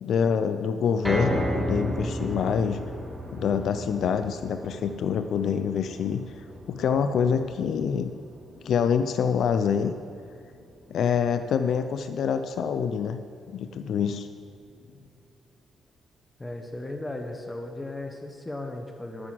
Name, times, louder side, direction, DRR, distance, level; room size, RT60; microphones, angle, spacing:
voice 1, 0.0-2.8 3.3-8.1 8.6-9.9 10.9-13.2 13.5-14.3, left 7 dB, 65° left, 9 dB, 0.5 m, -26 dB
sound 1, 1.0-13.3 13.7-13.8 14.2-14.3, equal, 10° right, 2.0 m, -35 dB
voice 2, 16.4-19.3, left 2 dB, 15° left, 4 dB, 1.2 m, -36 dB
12.5 x 6.1 x 7.7 m, 2.4 s
cardioid pair, 90°, 0 cm